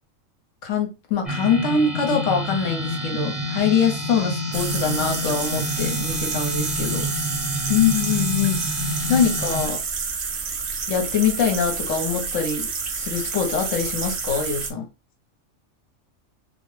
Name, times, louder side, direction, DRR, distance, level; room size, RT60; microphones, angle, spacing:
voice 1, 0.6-7.1 9.1-9.8 10.9-12.7 12.9-14.8, left 5 dB, 75° left, 1.1 m, -24 dB
sound 1, 1.2-9.7, equal, ahead, 0.7 m, -28 dB
sound 2, 4.5-14.7, right 5 dB, 60° right, 0.9 m, -29 dB
voice 2, 7.7-8.7, left 14 dB, 55° left, 0.6 m, -20 dB
2.4 x 2.1 x 3.0 m
omnidirectional pair, 1.3 m